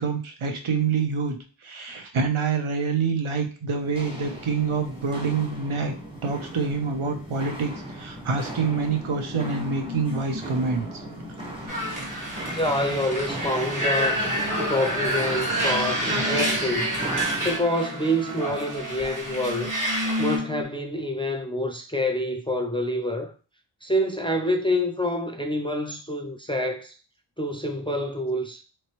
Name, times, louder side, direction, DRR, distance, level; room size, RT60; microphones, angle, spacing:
voice 1, 0.0-6.0 6.2-10.9 11.6-12.0, right 5 dB, 85° right, 0.7 m, -27 dB
Walk footsteps, 3.8-17.6, right 1 dB, 10° right, 0.9 m, -38 dB
sound 1, 8.7-20.6, left 1 dB, 60° right, 1.3 m, -36 dB
sound 2, 11.7-20.4, right 1 dB, 40° right, 1.2 m, -28 dB
voice 2, 12.5-14.2 14.6-16.9 17.4-19.7 20.2-23.3 23.8-26.9 27.4-28.6, left 1 dB, 10° left, 0.3 m, -27 dB
3.2 x 3.0 x 2.9 m
wide cardioid pair, 70°, 48 cm